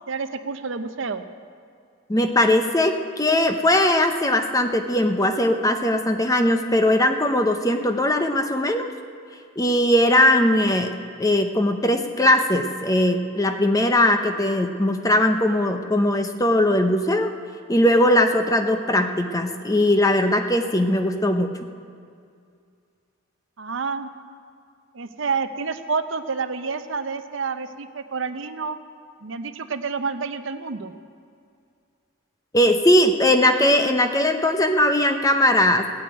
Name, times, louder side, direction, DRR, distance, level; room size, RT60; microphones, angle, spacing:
voice 1, 0.1-1.2 23.6-24.1 24.9-28.8 29.2-30.9, right 5 dB, 60° right, 10 dB, 0.7 m, -29 dB
voice 2, 2.1-8.9 9.6-17.3 17.7-21.7 32.5-35.9, left 1 dB, 15° left, 6 dB, 0.8 m, -20 dB
16.5 x 8.6 x 9.0 m, 2.3 s
head